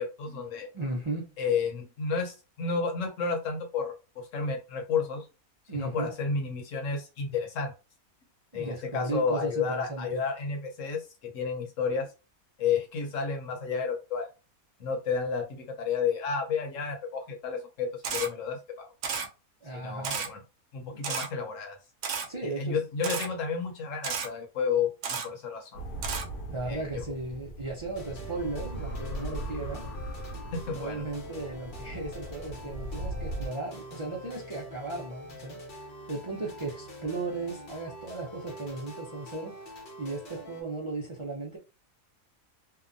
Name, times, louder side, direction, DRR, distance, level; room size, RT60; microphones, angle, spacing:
voice 1, 0.0-0.7 1.4-5.2 5.7-7.7 8.5-12.1 12.6-14.3 14.8-18.9 19.7-20.4 20.7-21.8 22.4-25.8 26.6-27.0 30.5-31.0, left 5 dB, 65° left, 1.0 m, -31 dB
voice 2, 0.7-1.3 5.7-6.1 8.5-10.2 19.6-20.2 20.9-21.0 22.3-22.8 26.5-29.9 30.7-41.6, right 2 dB, 50° right, 0.3 m, -36 dB
Camera, 18.0-18.3 19.0-19.3 20.0-20.3 21.0-21.3 22.0-22.3 23.0-23.3 24.0-24.3 25.0-25.3 26.0-26.2, right 6 dB, 80° right, 1.1 m, -32 dB
sound 1, 25.7-33.5, right 1 dB, 80° left, 1.1 m, -38 dB
sound 2, 27.9-40.6, equal, 45° left, 0.7 m, -45 dB
2.8 x 2.2 x 2.5 m
omnidirectional pair, 1.5 m